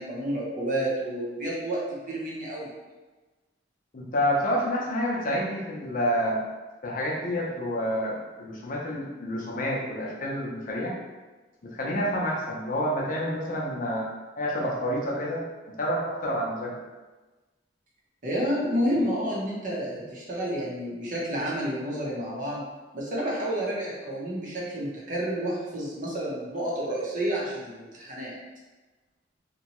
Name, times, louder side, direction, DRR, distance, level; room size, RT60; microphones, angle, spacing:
voice 1, 0.0-2.7 18.2-22.6 22.9-28.4, right 1 dB, 45° right, -5 dB, 0.7 m, -30 dB
voice 2, 3.9-6.4 6.8-10.9 11.6-14.1 14.4-15.4 15.8-16.7, equal, 45° left, -3 dB, 0.6 m, -28 dB
2.8 x 2.2 x 2.9 m, 1.2 s
head